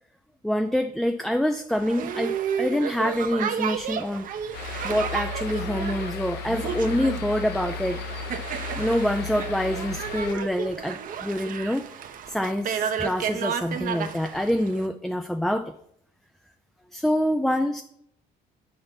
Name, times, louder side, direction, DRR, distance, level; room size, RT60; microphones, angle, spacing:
voice 1, 0.4-4.3 4.8-8.2 8.8-11.8 12.3-15.7 16.9-17.8, equal, ahead, 8 dB, 0.3 m, -26 dB
Boat Water vehicle, 1.7-14.9, right 8 dB, 55° right, 0.8 m, -32 dB
sound 1, 4.5-10.3, left 4 dB, 75° left, 1.2 m, -35 dB
6.8 x 5.7 x 5.2 m, 0.72 s
cardioid pair, 110°, 17 cm